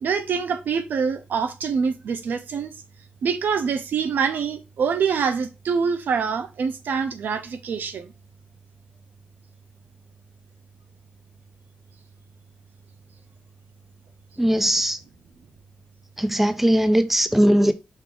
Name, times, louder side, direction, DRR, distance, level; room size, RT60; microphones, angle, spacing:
voice 1, 0.0-2.7 3.2-8.1, right 6 dB, 85° right, 0.6 m, -25 dB
voice 2, 14.4-15.0 16.2-17.7, equal, 5° right, 0.5 m, -19 dB
5.3 x 2.5 x 3.8 m
wide cardioid pair, 100°, 3 cm